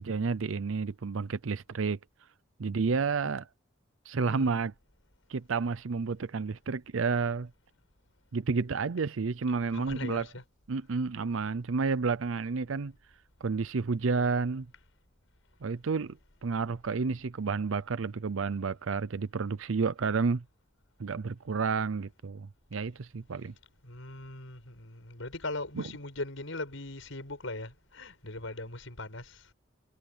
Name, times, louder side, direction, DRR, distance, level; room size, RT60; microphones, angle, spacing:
voice 1, 0.0-2.0 2.6-3.5 4.1-4.7 5.3-7.5 8.3-10.3 10.7-12.9 13.4-14.7 15.6-16.2 16.4-20.4 21.0-23.5 25.8-25.9, right 4 dB, 80° right, 0.6 m, -30 dB
voice 2, 9.7-10.4 23.8-29.5, left 2 dB, 75° left, 6.1 m, -40 dB
head